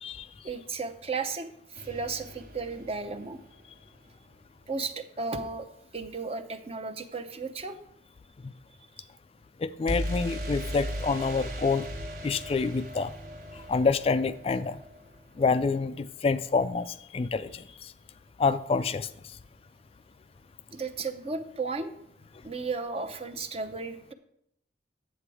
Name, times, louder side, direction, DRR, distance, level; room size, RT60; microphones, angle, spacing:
voice 1, 0.4-3.4 4.7-5.7 5.9-7.8 9.0-9.1 20.7-21.9 22.4-24.1, right 4 dB, 35° right, 8 dB, 0.7 m, -34 dB
sound 1, 1.7-3.8 9.9-15.6, equal, 50° right, 1.3 m, -38 dB
voice 2, 9.6-11.9 12.2-13.1 13.7-14.8 15.4-17.6 18.4-19.1, left 4 dB, 30° left, 12 dB, 0.3 m, -27 dB
9.9 x 7.8 x 4.8 m, 0.76 s
head